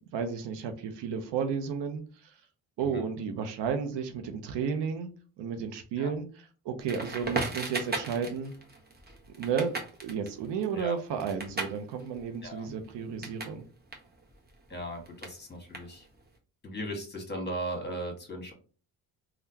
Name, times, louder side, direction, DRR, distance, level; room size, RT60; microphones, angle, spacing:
voice 1, 0.1-2.0 2.8-5.1 5.4-8.5 9.3-9.7 10.0-13.6, right 6 dB, 70° right, 7 dB, 0.7 m, -32 dB
Crackle, 6.9-13.6 13.8-16.3, right 3 dB, 20° right, 1.0 m, -38 dB
voice 2, 14.7-16.0 16.6-18.5, right 1 dB, 25° left, 1 dB, 1.4 m, -37 dB
3.6 x 2.3 x 2.8 m, 0.38 s
supercardioid pair, 60°, 43 cm